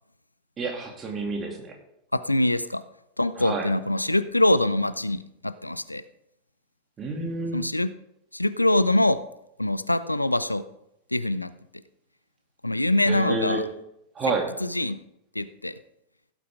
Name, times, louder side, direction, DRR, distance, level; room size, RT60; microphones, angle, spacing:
voice 1, 0.6-1.7 3.4-3.7 7.0-7.6 13.1-13.6 14.1-14.5, right 3 dB, 25° right, 1 dB, 2.5 m, -29 dB
voice 2, 2.1-2.8 3.2-6.0 7.5-7.9 8.3-9.2 9.6-10.6 11.1-11.5 12.6-13.6 14.6-15.0 15.4-15.7, left 1 dB, 85° left, 14 dB, 0.5 m, -24 dB
16.0 x 8.5 x 3.6 m, 0.81 s
figure-of-eight pair, 90°, 0 cm